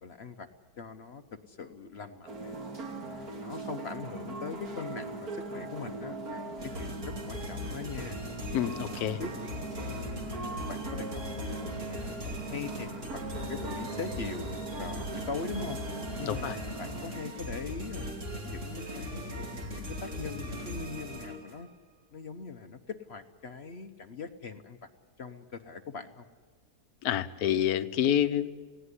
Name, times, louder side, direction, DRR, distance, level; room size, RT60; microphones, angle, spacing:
voice 1, 0.0-0.5 0.8-2.5 3.0-8.2 8.8-9.3 9.9-14.5 14.8-15.8 16.2-18.1 18.4-21.7 22.1-24.9 25.2-26.3, left 5 dB, 50° left, 8 dB, 0.9 m, -41 dB
sound 1, 2.3-17.1, right 2 dB, 60° right, 2.4 m, -40 dB
sound 2, 6.6-21.6, equal, 45° right, 3.1 m, -39 dB
voice 2, 8.5-9.2 16.3-16.5 27.0-28.5, left 10 dB, 65° left, 12 dB, 1.2 m, -28 dB
19.5 x 17.0 x 9.7 m, 1.5 s
omnidirectional pair, 1.8 m